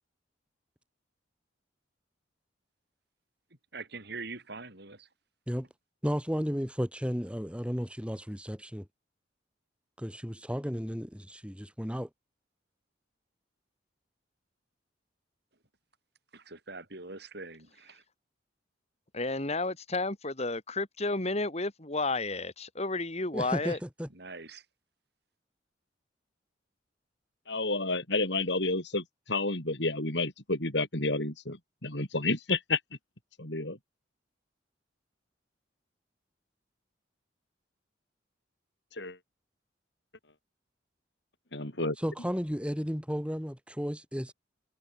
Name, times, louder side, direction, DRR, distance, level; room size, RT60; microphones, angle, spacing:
voice 1, 3.7-5.1 16.3-18.0 23.6-23.8 24.1-24.6, right 3 dB, 60° right, 6.1 m, -43 dB
voice 2, 6.0-8.9 10.0-12.1 23.3-24.1 42.0-44.3, equal, 5° right, 6.5 m, -33 dB
voice 3, 19.1-23.8, left 2 dB, 35° left, 2.9 m, -32 dB
voice 4, 27.5-32.8 33.4-33.8 38.9-39.2 41.5-42.0, left 2 dB, 65° left, 4.9 m, -30 dB
head